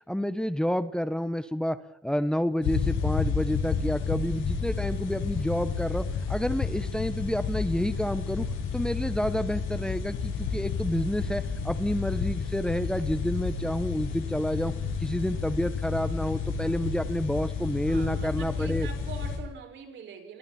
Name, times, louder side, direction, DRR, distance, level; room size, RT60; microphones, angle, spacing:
voice 1, 0.1-1.8 2.0-8.5 8.7-14.7 15.0-18.9, equal, 5° left, 11 dB, 1.3 m, -29 dB
sound 1, 2.6-19.4, left 5 dB, 80° left, 7.7 m, -31 dB
voice 2, 17.9-20.4, right 6 dB, 70° right, 3 dB, 6.5 m, -43 dB
29.5 x 22.5 x 4.6 m, 0.65 s
cardioid pair, 90°, 20 cm